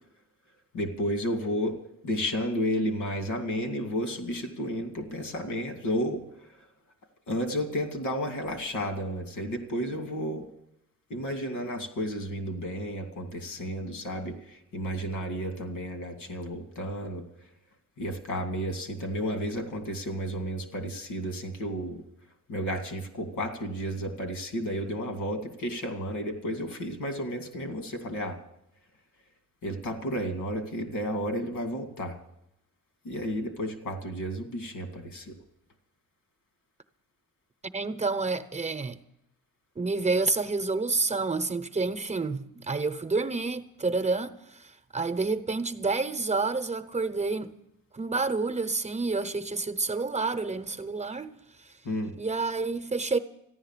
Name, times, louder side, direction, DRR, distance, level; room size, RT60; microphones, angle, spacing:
voice 1, 0.7-1.8 2.0-6.2 7.3-10.5 11.1-17.3 18.0-22.0 22.5-28.4 29.6-32.2 33.0-35.4 51.8-52.1, equal, 85° left, 2.4 m, -32 dB
voice 2, 37.7-39.0 39.8-47.5 47.9-51.3 52.2-53.2, right 3 dB, 20° right, 0.9 m, -29 dB
14.0 x 10.5 x 7.4 m
cardioid pair, 90°, 30 cm